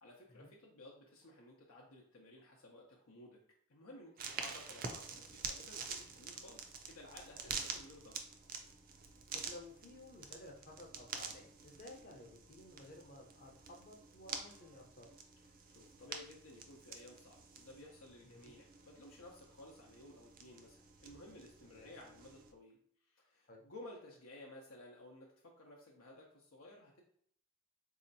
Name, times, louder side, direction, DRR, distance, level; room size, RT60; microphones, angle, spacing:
voice 1, 0.0-3.4 3.7-8.2 15.7-22.8 23.1-27.0, left 1 dB, 90° left, -2 dB, 0.7 m, -56 dB
sound 1, 4.2-22.5, right 5 dB, 45° right, 0.4 m, -48 dB
voice 2, 9.3-15.1 18.2-18.5 21.6-21.9 23.5-23.6, left 1 dB, 40° left, 1 dB, 0.7 m, -55 dB
4.2 x 2.8 x 2.6 m, 0.64 s
head